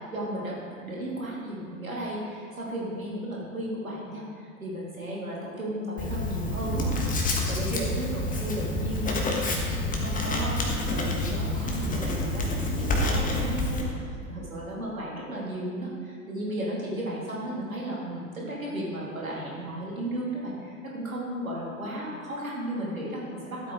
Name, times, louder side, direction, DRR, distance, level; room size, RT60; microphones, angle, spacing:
voice 1, 0.1-7.1 7.5-23.7, right 1 dB, 80° right, -5 dB, 2.6 m, -34 dB
Writing, 6.0-13.8, left 1 dB, 20° left, 1.4 m, -28 dB
12.5 x 8.2 x 3.8 m, 2.2 s
figure-of-eight pair, 80°, 40 cm